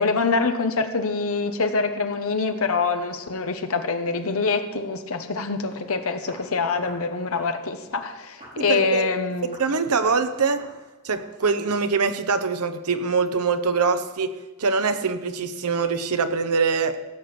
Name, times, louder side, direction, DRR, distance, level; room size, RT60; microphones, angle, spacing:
voice 1, 0.0-9.5, left 4 dB, 70° left, 7 dB, 1.0 m, -25 dB
Walk footsteps, 5.7-5.9 6.3-6.5 6.8-7.0 7.4-7.6 7.9-8.1 8.4-8.6 8.9-9.2 9.5-9.7 10.0-10.3 10.6-10.8 11.1-11.3 11.6-11.9, right 1 dB, 35° right, 4.9 m, -45 dB
voice 2, 8.7-9.0 9.6-10.6 11.0-14.3 14.6-17.0, right 4 dB, 90° right, 10 dB, 0.9 m, -23 dB
16.0 x 6.8 x 6.1 m, 1.1 s
head